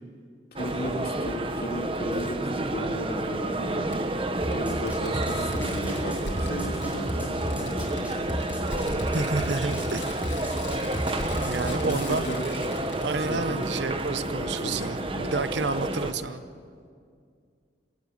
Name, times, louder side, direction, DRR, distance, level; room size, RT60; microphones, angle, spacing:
Fireworks, 0.6-0.7 2.2-2.3 3.9-4.0 4.5-4.6 4.9-13.7 14.1-14.2, left 2 dB, 85° left, 8.0 m, -40 dB
voice 1, 0.6-3.9 4.5-8.5 11.8-12.5 13.2-13.7 14.2-15.5, equal, 55° left, 1 dB, 3.1 m, -35 dB
sound 1, 0.6-16.1, right 2 dB, 30° right, 1.1 m, -30 dB
sound 2, 4.4-12.2, equal, 10° right, 5.5 m, -33 dB
voice 2, 9.1-10.1 11.3-12.3 13.0-16.4, right 3 dB, 70° right, 12 dB, 0.9 m, -30 dB
26.0 x 17.5 x 8.7 m, 2.2 s
head